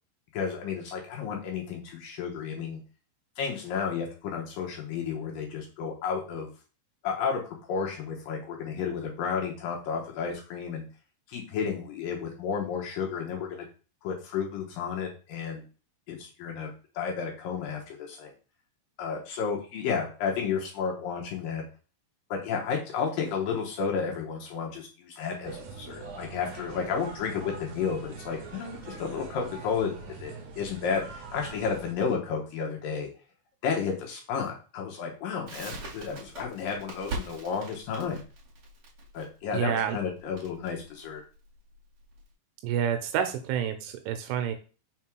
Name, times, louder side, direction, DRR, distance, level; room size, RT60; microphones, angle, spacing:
voice 1, 0.3-2.8 3.4-6.5 7.0-10.9 11.3-13.7 14.0-15.6 16.1-18.3 19.0-21.6 22.3-29.9 30.2-33.1 33.6-38.2 39.1-41.2, left 6 dB, 75° left, 0 dB, 2.0 m, -32 dB
sound 1, 25.4-31.9, right 4 dB, 60° right, 2.7 m, -43 dB
Crackle, 35.5-42.3, right 3 dB, 45° right, 3.2 m, -42 dB
voice 2, 39.5-40.0 42.6-44.6, right 8 dB, 85° right, 7 dB, 3.1 m, -28 dB
6.7 x 3.6 x 4.5 m, 0.36 s
omnidirectional pair, 5.6 m